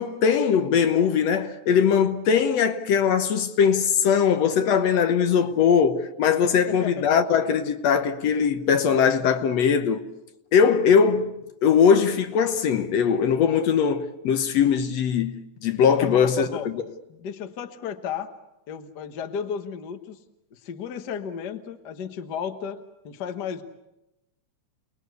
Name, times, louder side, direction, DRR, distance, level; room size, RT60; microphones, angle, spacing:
voice 1, 0.0-10.0 10.5-11.3 11.6-16.8, left 7 dB, 65° left, 2.1 m, -21 dB
voice 2, 6.7-7.1 16.0-16.7 17.1-18.3 18.7-20.2 20.5-22.8 23.0-23.6, left 7 dB, 45° left, 1.4 m, -33 dB
29.0 x 20.0 x 8.2 m
omnidirectional pair, 3.3 m